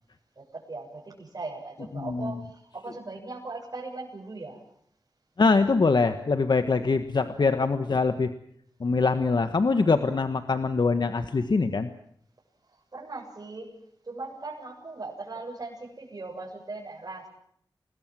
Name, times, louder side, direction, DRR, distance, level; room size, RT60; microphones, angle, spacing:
voice 1, 0.4-4.6 12.9-13.7 14.0-17.3, right 3 dB, 50° right, -4 dB, 7.6 m, -39 dB
voice 2, 1.9-2.4 5.4-8.3 8.8-11.9, left 4 dB, 65° left, 9 dB, 1.4 m, -23 dB
29.0 x 21.0 x 7.7 m, 0.69 s
wide cardioid pair, 90°, 8 cm